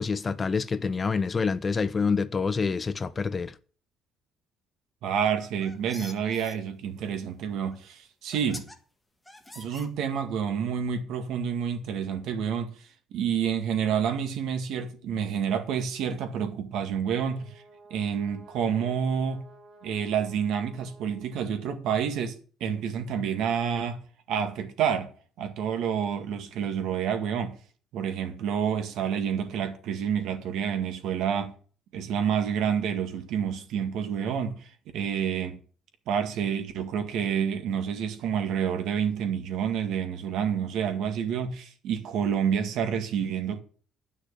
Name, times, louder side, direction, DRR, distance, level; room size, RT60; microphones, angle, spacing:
voice 1, 0.0-3.5, left 5 dB, 25° left, 0.5 m, -27 dB
voice 2, 5.0-8.7 9.6-12.7 13.1-17.5 17.9-19.5 19.8-24.0 24.3-25.1 25.4-27.6 27.9-31.6 31.9-34.7 34.9-35.6 36.1-43.6, right 7 dB, 70° right, 1.9 m, -28 dB
sound 1, 5.3-6.6 7.7-7.8 8.3-8.8 9.3-10.3, left 1 dB, 5° left, 1.4 m, -45 dB
Brass instrument, 16.7-21.7, right 2 dB, 40° right, 3.4 m, -54 dB
10.0 x 6.3 x 8.2 m
cardioid pair, 160°, 0 cm